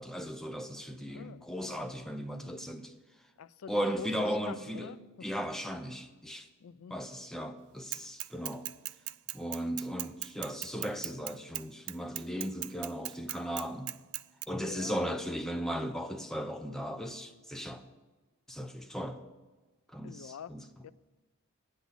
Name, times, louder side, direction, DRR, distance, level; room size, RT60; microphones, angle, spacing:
voice 1, 0.0-2.9 3.7-4.9 5.2-6.5 6.9-8.7 9.3-14.0 14.5-17.8 18.5-19.2 19.9-20.6, equal, ahead, 0.6 m, -36 dB
voice 2, 0.6-1.5 3.4-4.1 4.5-5.3 6.6-7.0 14.6-15.0 20.0-20.9, left 7 dB, 75° left, 0.4 m, -47 dB
Bicycle / Mechanisms, 7.9-14.4, right 18 dB, 85° right, 0.3 m, -38 dB
9.2 x 6.2 x 8.2 m
head